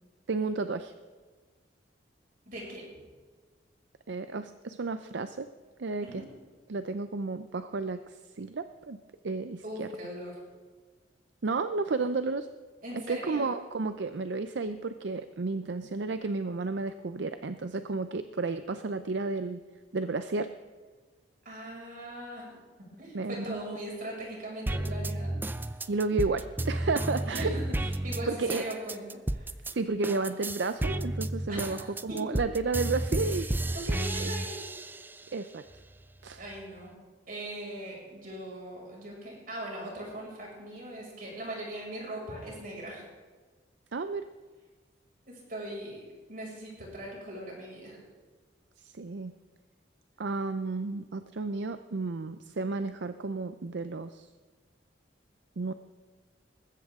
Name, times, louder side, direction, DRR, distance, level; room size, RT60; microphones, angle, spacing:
voice 1, 0.3-0.9 4.1-5.5 5.8-6.2 6.7-9.0 9.2-9.9 11.4-12.5 13.1-19.6 19.9-20.5 23.1-23.6 25.9-27.6 28.3-28.6 29.7-33.5 34.2-34.3 35.3-35.6 36.2-36.4 43.9-44.3 48.8-49.3 50.2-54.3 55.6-55.7, right 3 dB, 75° right, 10 dB, 0.6 m, -32 dB
voice 2, 2.5-2.8 6.0-6.2 9.6-10.3 12.8-13.5 21.4-22.6 22.9-25.6 27.2-29.0 29.3-29.5 31.5-31.8 32.1-32.2 33.1-33.5 33.7-34.6 36.4-36.9 37.3-43.0 45.3-46.0 46.3-48.0, right 1 dB, 50° right, -3 dB, 6.1 m, -40 dB
sound 1, 24.7-29.7 30.0-35.2 35.7-36.7, right 1 dB, 10° right, 0.4 m, -32 dB
20.0 x 15.5 x 3.7 m, 1.4 s
head